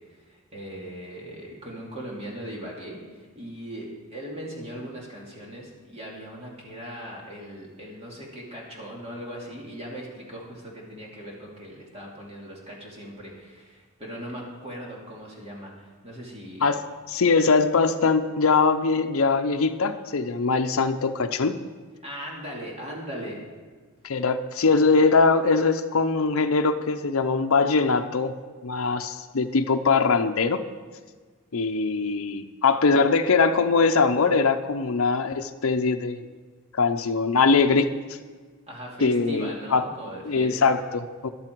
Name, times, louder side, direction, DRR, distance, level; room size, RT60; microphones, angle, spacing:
voice 1, 0.1-16.7 22.0-23.4 38.7-40.7, equal, 30° right, -3 dB, 2.6 m, -39 dB
voice 2, 17.1-21.6 24.0-28.3 28.6-30.6 31.5-36.2 36.7-37.9 39.0-39.8 40.2-41.3, left 4 dB, 70° left, 6 dB, 0.6 m, -22 dB
13.5 x 11.5 x 4.6 m, 1.5 s
head